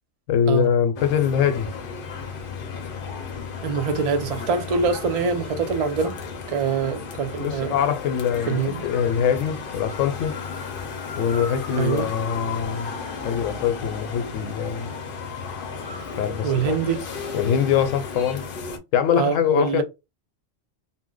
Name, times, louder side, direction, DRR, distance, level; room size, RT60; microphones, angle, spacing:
voice 1, 0.3-1.7 7.4-10.4 11.2-12.9 13.2-14.9 16.2-16.8 17.3-18.4 18.9-19.8, left 8 dB, 80° left, 1.0 m, -23 dB
sound 1, 1.0-18.8, left 5 dB, 55° left, 0.7 m, -34 dB
voice 2, 3.6-6.2 6.5-7.7 8.5-8.8 11.8-12.1 16.4-17.0 19.2-19.8, right 5 dB, 60° right, 0.3 m, -24 dB
2.6 x 2.0 x 3.7 m
omnidirectional pair, 1.3 m